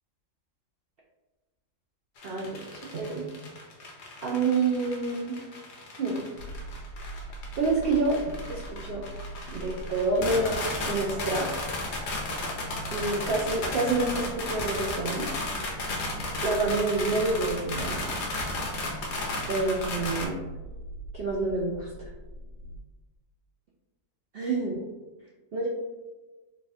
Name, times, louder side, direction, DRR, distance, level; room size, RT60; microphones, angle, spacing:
sound 1, 2.2-20.2, left 2 dB, 55° left, 0.8 m, -34 dB
voice 1, 2.2-3.4 4.2-5.4 6.0-6.2 7.6-9.0 9.5-11.5 12.9-15.3 16.4-18.0 19.5-20.4 21.1-22.1 24.3-24.9 25.5-25.7, right 3 dB, 90° right, -3 dB, 0.5 m, -28 dB
sound 2, 6.4-22.8, right 1 dB, 70° right, 1.1 m, -42 dB
3.3 x 2.3 x 4.1 m, 1.2 s
omnidirectional pair, 1.7 m